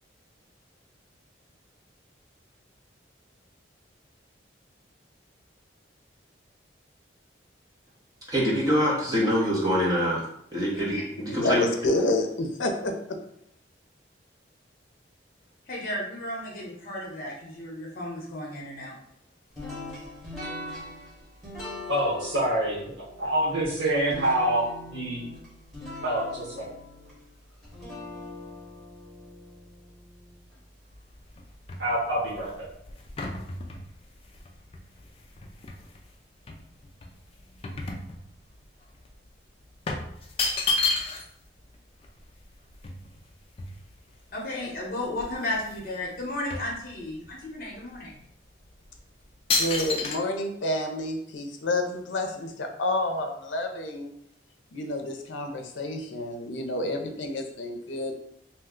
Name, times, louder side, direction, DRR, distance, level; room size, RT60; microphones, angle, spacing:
voice 1, 8.3-10.2 10.5-11.6, equal, 20° right, -5 dB, 0.8 m, -24 dB
voice 2, 11.3-12.9 49.6-54.1 54.7-58.1, left 1 dB, 80° left, 4 dB, 0.5 m, -29 dB
voice 3, 15.7-19.0 44.3-48.2, left 1 dB, 50° left, -2 dB, 0.8 m, -34 dB
sound 1, 19.5-30.6, left 1 dB, ahead, 1.1 m, -42 dB
voice 4, 21.9-22.8 23.2-24.6 24.9-25.3 26.0-26.7 31.8-32.7, right 1 dB, 75° right, -8 dB, 1.0 m, -26 dB
sound 2, 30.9-36.0 36.5-38.6 38.9-39.1 39.9-41.4 41.7-41.8 42.0-44.2 44.7-44.8 45.1-45.9 46.1-47.4 47.9-48.1 48.7-49.0 49.5-50.2, left 3 dB, 30° left, 0.3 m, -32 dB
2.8 x 2.2 x 3.6 m, 0.74 s
head